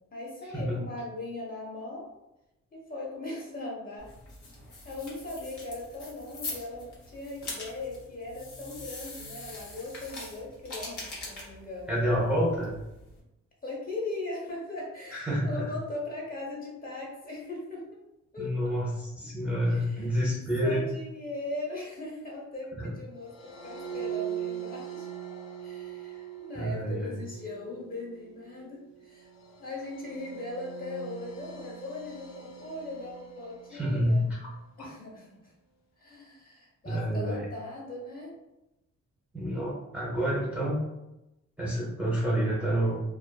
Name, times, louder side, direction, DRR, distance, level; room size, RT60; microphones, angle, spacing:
voice 1, 0.1-2.1 2.7-4.1 4.8-11.9 13.6-17.8 18.3-18.8 19.7-20.0 20.6-25.1 25.6-29.3 29.6-34.3 34.8-35.5 36.0-38.3, left 2 dB, 30° left, -4 dB, 0.7 m, -39 dB
sound 1, 4.0-13.2, left 2 dB, 85° left, 0.9 m, -43 dB
voice 2, 11.9-12.7 15.1-15.7 18.4-20.9 22.8-22.9 26.6-27.1 33.7-34.4 34.8-34.9 36.8-37.5 39.3-40.8 41.6-43.0, equal, 5° right, -6 dB, 0.6 m, -28 dB
sound 2, 23.2-34.5, right 9 dB, 65° left, 0.5 m, -42 dB
2.4 x 2.3 x 2.2 m, 0.93 s
wide cardioid pair, 125°, 29 cm